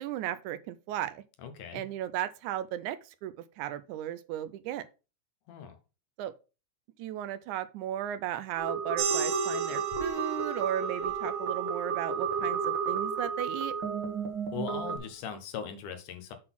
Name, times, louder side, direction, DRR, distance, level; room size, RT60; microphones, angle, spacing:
voice 1, 0.0-1.2 1.7-4.9 6.2-6.3 7.0-13.7, right 12 dB, 80° right, 1.9 m, -35 dB
voice 2, 1.4-1.8 5.5-5.8 14.5-16.3, left 7 dB, 80° left, 2.7 m, -39 dB
sound 1, 8.6-15.0, right 6 dB, 50° right, 1.6 m, -32 dB
sound 2, 9.0-14.1, right 5 dB, 65° right, 2.4 m, -38 dB
7.6 x 4.0 x 5.9 m
omnidirectional pair, 3.6 m